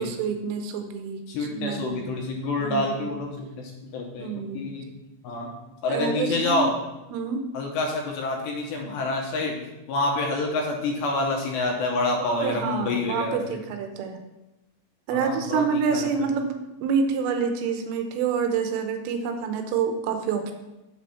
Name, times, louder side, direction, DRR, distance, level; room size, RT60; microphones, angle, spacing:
voice 1, 0.0-2.1 2.6-3.1 4.2-4.6 5.9-6.7 7.1-7.5 12.4-14.2 15.1-16.5 16.8-20.5, right 6 dB, 85° right, 6 dB, 3.4 m, -27 dB
voice 2, 1.3-4.9 5.2-5.5 5.8-6.7 7.5-13.6 15.1-16.1, left 2 dB, 75° left, 0 dB, 2.8 m, -27 dB
7.8 x 6.3 x 5.7 m, 0.98 s
omnidirectional pair, 5.7 m